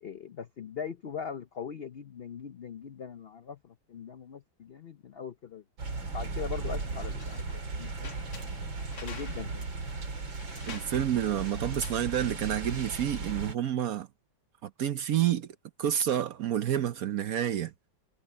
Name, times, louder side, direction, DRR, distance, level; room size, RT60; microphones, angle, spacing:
voice 1, 0.0-5.6 6.1-8.2 9.0-9.7, left 7 dB, 75° left, 0.5 m, -41 dB
sound 1, 5.8-13.6, right 3 dB, 85° right, 4.0 m, -36 dB
sound 2, 7.0-12.5, left 6 dB, 55° left, 2.0 m, -50 dB
voice 2, 10.7-14.1 14.6-15.5 15.8-17.7, right 10 dB, 60° right, 1.0 m, -29 dB
omnidirectional pair, 2.0 m